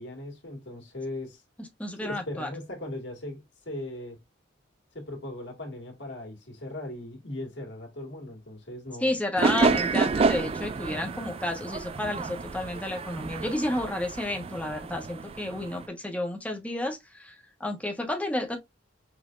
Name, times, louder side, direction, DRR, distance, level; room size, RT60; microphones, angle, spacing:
voice 1, 0.0-1.4 2.0-4.2 4.9-9.1, left 1 dB, 70° left, 2.0 m, -38 dB
voice 2, 1.6-2.5 9.0-18.6, left 1 dB, 5° left, 1.1 m, -31 dB
sound 1, 9.4-15.9, right 4 dB, 30° right, 0.3 m, -29 dB
6.0 x 3.4 x 2.5 m
head